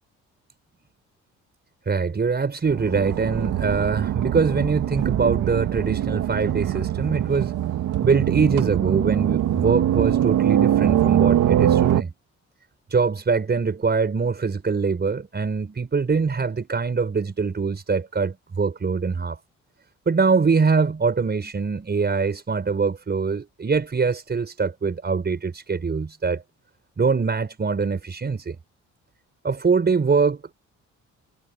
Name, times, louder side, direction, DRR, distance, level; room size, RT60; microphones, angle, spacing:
voice 1, 1.9-7.5 8.0-12.1 12.9-19.4 20.1-26.4 27.0-28.6 29.4-30.5, right 5 dB, 35° right, 5.5 m, -23 dB
sound 1, 2.7-12.0, right 11 dB, 80° right, 2.2 m, -22 dB
cardioid pair, 90°, 30 cm